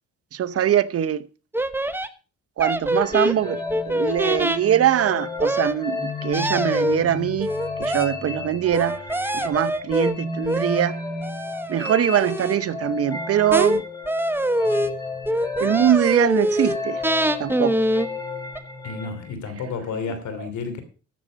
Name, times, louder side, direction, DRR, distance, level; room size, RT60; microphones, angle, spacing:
voice 1, 0.3-1.3 2.6-7.5 7.8-9.0 9.3-11.0 11.7-13.8 15.6-17.0 17.4-17.8, right 10 dB, 50° right, 0.8 m, -22 dB
sound 1, 1.5-2.1 2.6-4.6 5.4-5.7 6.3-7.0 7.4-8.1 8.7-10.1 10.5-10.8 11.2-12.6 13.5-13.8 14.1-14.9 15.3-16.8 17.0-18.1 18.6-18.7, right 1 dB, 5° right, 0.9 m, -24 dB
sound 2, 2.9-19.3, left 3 dB, 15° left, 2.8 m, -33 dB
voice 2, 18.8-20.8, left 5 dB, 70° left, 3.0 m, -31 dB
13.5 x 7.4 x 5.2 m
cardioid pair, 90°, 30 cm